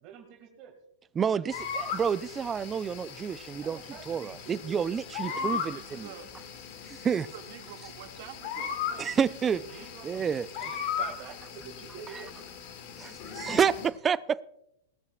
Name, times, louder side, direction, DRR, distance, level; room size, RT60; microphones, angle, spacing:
voice 1, 0.0-0.7 3.6-4.8 8.9-10.3 10.6-12.3, right 7 dB, 40° right, 2.2 m, -47 dB
voice 2, 1.2-3.8 4.1-6.1 6.9-7.3 9.0-9.6 10.0-10.5 12.1-12.2 13.0-14.4, right 7 dB, 20° right, 0.5 m, -29 dB
sound 1, 1.5-13.9, left 7 dB, 50° left, 2.2 m, -38 dB
voice 3, 5.3-6.3 7.3-8.8, right 10 dB, 55° right, 2.0 m, -46 dB
19.0 x 13.0 x 2.4 m
hypercardioid pair, 115°, 0 cm